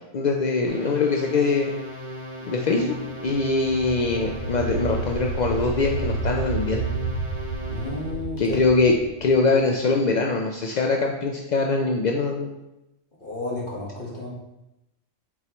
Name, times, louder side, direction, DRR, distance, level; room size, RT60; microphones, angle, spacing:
voice 1, 0.1-1.7 2.5-2.9 3.2-6.9 8.4-8.9 9.2-12.5, left 3 dB, 65° left, 1 dB, 0.4 m, -22 dB
sound 1, 0.7-8.2, left 1 dB, 60° right, 1.7 m, -37 dB
sound 2, 3.0-9.8, right 4 dB, 25° right, 1.9 m, -31 dB
voice 2, 7.7-8.6 13.2-14.3, left 2 dB, 45° left, -5 dB, 1.5 m, -32 dB
7.4 x 4.3 x 3.0 m, 0.92 s
omnidirectional pair, 1.3 m